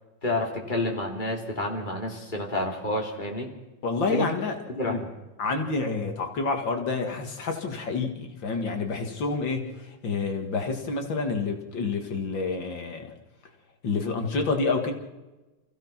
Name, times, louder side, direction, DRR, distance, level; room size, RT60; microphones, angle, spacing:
voice 1, 0.2-3.5 4.1-4.3 4.7-5.1, left 1 dB, 25° left, 0 dB, 3.2 m, -29 dB
voice 2, 3.8-4.6 4.9-5.0 5.4-13.1 13.8-14.9, left 4 dB, 80° left, 4 dB, 2.7 m, -28 dB
28.0 x 16.0 x 5.9 m, 1.1 s
omnidirectional pair, 2.0 m